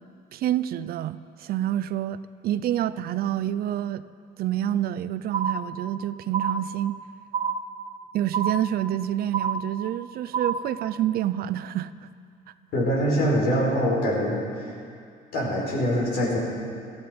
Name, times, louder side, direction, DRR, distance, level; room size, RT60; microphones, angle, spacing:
voice 1, 0.3-2.2 2.4-4.0 4.4-7.0 8.1-12.1, right 12 dB, 65° right, 15 dB, 0.5 m, -27 dB
sound 1, 5.3-6.0 6.3-7.0 7.3-8.0 8.3-9.0 9.3-10.0 10.3-10.9, right 6 dB, 40° right, 1.1 m, -28 dB
voice 2, 12.7-14.7 15.3-16.4, equal, 75° left, -2 dB, 4.8 m, -24 dB
17.5 x 14.0 x 5.2 m, 2.3 s
cardioid pair, 110°, 17 cm